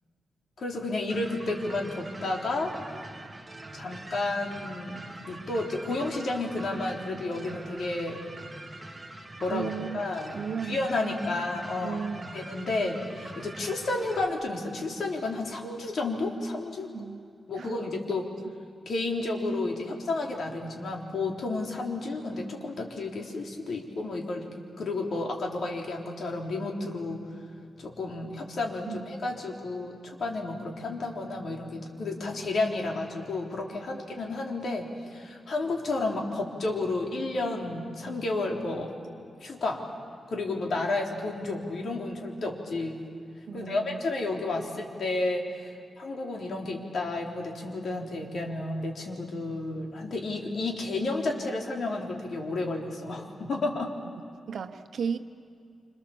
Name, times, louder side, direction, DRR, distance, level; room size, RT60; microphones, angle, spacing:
voice 1, 0.6-2.7 3.7-8.2 9.4-10.4 10.7-12.0 12.3-16.9 17.5-18.3 18.9-24.5 24.8-27.3 27.8-38.9 39.4-39.8 40.3-43.0 43.5-53.9, left 2 dB, 60° left, 0 dB, 3.7 m, -31 dB
sound 1, 1.1-14.3, right 2 dB, 10° right, 2.0 m, -44 dB
voice 2, 9.5-10.0 10.3-11.2 11.8-12.2 16.9-17.2 17.6-17.8 28.9-29.0 43.5-44.0 54.5-55.2, right 6 dB, 65° right, 8 dB, 1.2 m, -34 dB
28.0 x 27.5 x 7.2 m, 2.3 s
wide cardioid pair, 125°, 0 cm